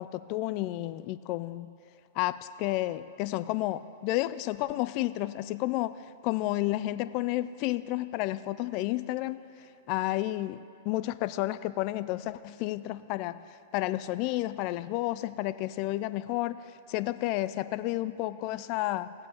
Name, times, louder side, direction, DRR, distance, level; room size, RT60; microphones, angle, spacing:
voice 1, 0.0-1.7 2.2-5.9 6.2-9.4 9.9-13.4 13.7-19.1, left 16 dB, 45° left, 14 dB, 0.4 m, -31 dB
17.5 x 7.5 x 3.0 m, 2.4 s
hypercardioid pair, 120°, 0 cm